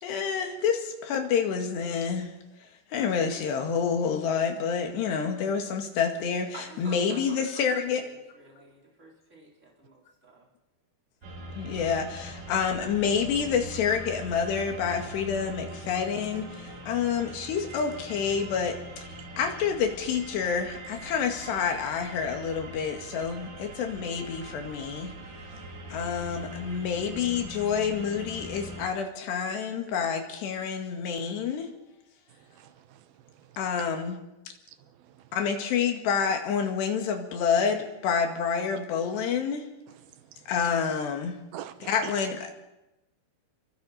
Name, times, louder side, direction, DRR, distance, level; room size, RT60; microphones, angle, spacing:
voice 1, 0.0-2.3 2.6-8.0 11.6-25.1 25.9-31.7 33.6-34.2 35.3-39.7 40.5-41.4 41.9-42.5, left 6 dB, 85° left, 4.2 m, -28 dB
voice 2, 6.2-10.5, right 1 dB, 15° right, 4.2 m, -49 dB
sound 1, 11.2-28.9, right 1 dB, 45° right, 3.9 m, -42 dB
voice 3, 32.5-33.5 34.8-35.2 40.2-40.5 41.5-42.1, right 11 dB, 75° right, 2.6 m, -45 dB
29.0 x 23.5 x 4.3 m
omnidirectional pair, 4.7 m